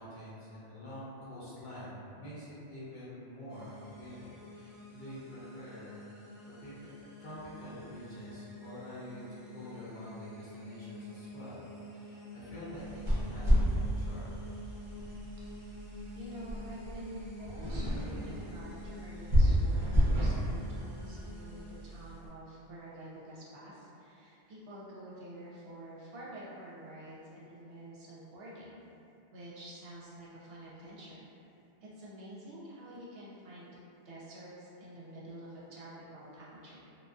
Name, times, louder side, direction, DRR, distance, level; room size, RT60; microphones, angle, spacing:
voice 1, 0.0-6.0 6.4-6.9 7.2-11.6 11.9-14.4, equal, 55° left, -11 dB, 0.6 m, -47 dB
sound 1, 3.5-21.6, left 1 dB, 20° left, 0.8 m, -48 dB
sound 2, 12.7-22.1, equal, 35° right, 0.5 m, -31 dB
voice 2, 16.1-28.8 29.3-31.3 31.8-33.7 34.0-36.8, right 1 dB, 65° right, -8 dB, 0.8 m, -48 dB
2.5 x 2.2 x 2.3 m, 2.7 s
omnidirectional pair, 1.2 m